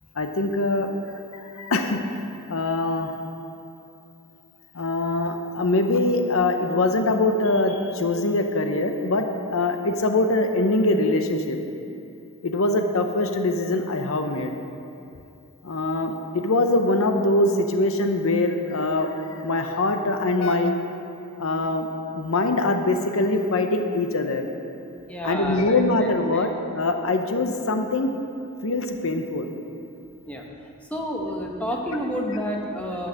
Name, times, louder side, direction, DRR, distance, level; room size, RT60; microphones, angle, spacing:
voice 1, 0.2-0.9 1.3-3.1 4.7-11.6 12.4-14.5 15.6-20.8 21.4-21.9 22.1-24.5 25.2-28.1 28.6-29.5, left 2 dB, 70° left, 6 dB, 0.7 m, -23 dB
voice 2, 25.1-26.5 30.3-30.4 30.9-33.1, equal, 5° left, 0 dB, 0.9 m, -30 dB
10.0 x 6.4 x 6.5 m, 2.7 s
head